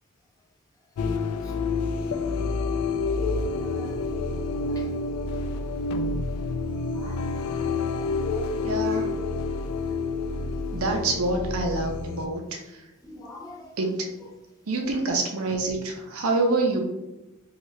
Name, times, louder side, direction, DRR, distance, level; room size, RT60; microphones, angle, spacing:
sound 1, 1.0-12.3, left 3 dB, 85° left, 0.3 m, -28 dB
voice 1, 3.3-4.1 4.5-4.9 5.8-5.9 6.9-8.4 8.8-9.1 10.5-10.7 13.0-13.8, left 1 dB, 15° left, -3 dB, 0.6 m, -45 dB
voice 2, 8.6-9.1 10.7-12.4 13.8-14.0 14.7-16.8, right 2 dB, 70° right, 3 dB, 0.5 m, -26 dB
2.7 x 2.4 x 3.0 m, 0.96 s
head